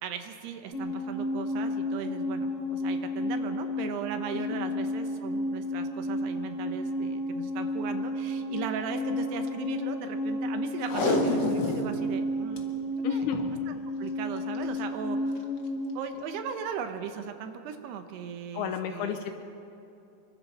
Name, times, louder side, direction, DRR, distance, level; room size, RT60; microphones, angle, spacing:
voice 1, 0.0-12.6 13.1-15.5 15.9-19.2, right 7 dB, 75° right, 7 dB, 3.1 m, -38 dB
sound 1, 0.7-16.1, left 1 dB, 25° right, 7.8 m, -32 dB
Packing tape duct tape, 10.8-11.9 12.3-12.4 12.6-12.7 13.2-13.5 14.5-14.8 15.4-15.5, left 3 dB, 60° left, 1.1 m, -28 dB
voice 2, 13.0-13.4 18.5-19.3, left 10 dB, 80° left, 6 dB, 2.6 m, -31 dB
26.5 x 24.0 x 4.3 m, 2.7 s
omnidirectional pair, 4.9 m